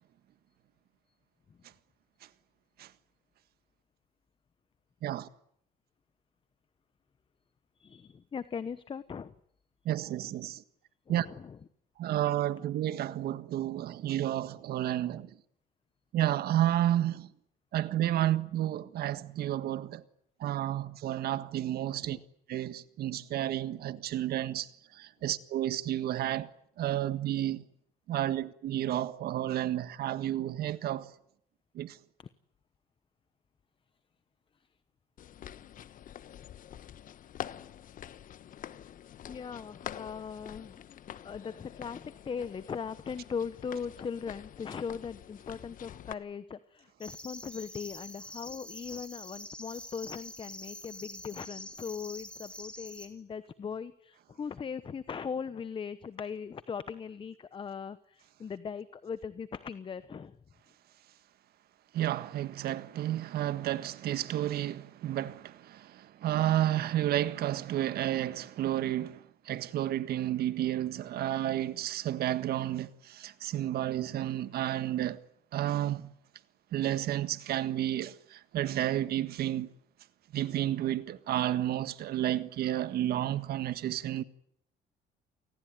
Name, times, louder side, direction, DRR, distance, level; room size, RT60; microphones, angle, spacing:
voice 1, 7.8-9.3 11.1-11.6 22.0-22.2 39.3-41.0 41.2-60.4, left 6 dB, 30° left, 1.0 m, -39 dB
voice 2, 9.8-10.6 11.1-11.3 12.0-15.3 16.1-17.3 17.7-20.0 20.4-22.2 22.5-26.5 26.8-27.6 28.1-31.1 31.7-32.0 61.9-75.2 75.5-76.1 76.7-79.7 80.3-84.2, right 12 dB, 65° right, 1.6 m, -31 dB
sound 1, 35.2-46.1, left 10 dB, 55° left, 1.2 m, -46 dB
sound 2, 47.0-53.1, left 1 dB, 5° left, 4.7 m, -46 dB
29.0 x 19.0 x 9.4 m
cardioid pair, 110°, 17 cm